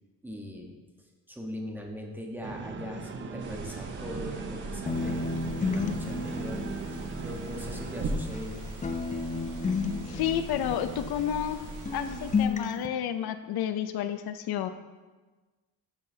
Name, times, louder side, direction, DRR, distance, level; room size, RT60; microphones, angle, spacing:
voice 1, 0.2-0.8 1.3-5.3 5.6-6.6 6.9-8.6, equal, 5° right, 1 dB, 1.1 m, -40 dB
sound 1, 2.4-8.2, right 5 dB, 30° right, 0.5 m, -39 dB
sound 2, 3.4-12.5, right 2 dB, 50° right, 1.1 m, -39 dB
sound 3, 4.9-8.5 8.8-11.6 11.8-12.9, left 4 dB, 20° left, 0.4 m, -32 dB
voice 2, 10.0-11.6 11.9-14.7, left 10 dB, 65° left, 10 dB, 0.5 m, -31 dB
12.0 x 5.6 x 2.7 m, 1.3 s
cardioid pair, 115°, 40 cm